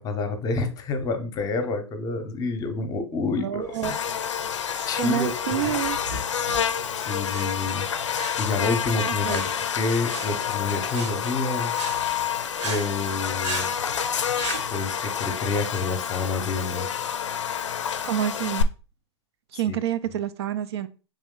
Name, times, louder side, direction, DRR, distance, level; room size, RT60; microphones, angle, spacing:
voice 1, 0.0-4.0 4.9-5.3 5.6-5.8 7.0-7.9 8.4-9.5 9.7-11.7 12.6-13.7 14.7-16.9 19.7-19.8, left 3 dB, 25° left, 8 dB, 0.7 m, -28 dB
voice 2, 3.3-4.1 5.0-6.0 9.0-9.4 18.0-18.7 19.5-20.9, right 11 dB, 60° right, 13 dB, 0.4 m, -28 dB
sound 1, 3.6-14.7, right 2 dB, 85° right, 1.4 m, -38 dB
Buzz, 3.8-18.6, left 8 dB, 90° left, 0.4 m, -28 dB
3.6 x 3.0 x 3.7 m, 0.35 s
hypercardioid pair, 120°, 15 cm